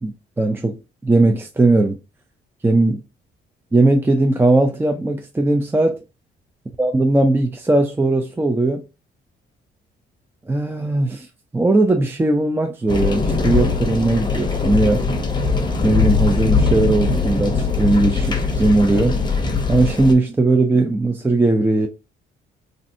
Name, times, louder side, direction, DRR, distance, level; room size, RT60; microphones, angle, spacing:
voice 1, 0.0-2.0 2.6-3.0 3.7-6.0 6.8-8.8 10.5-11.3 11.5-15.1 15.8-19.2 19.7-21.9, right 2 dB, 10° right, 0.4 m, -18 dB
sound 1, 12.9-20.1, left 4 dB, 20° left, 0.7 m, -20 dB
3.2 x 2.6 x 2.5 m
cardioid pair, 90°, 20 cm